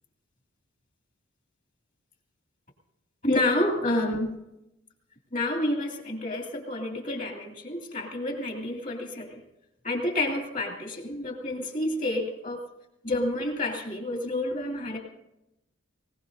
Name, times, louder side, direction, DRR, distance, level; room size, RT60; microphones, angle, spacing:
voice 1, 3.2-4.3 5.3-9.4 9.8-12.6 13.0-15.0, left 1 dB, 40° left, 1 dB, 2.4 m, -29 dB
20.5 x 19.0 x 2.7 m, 0.90 s
head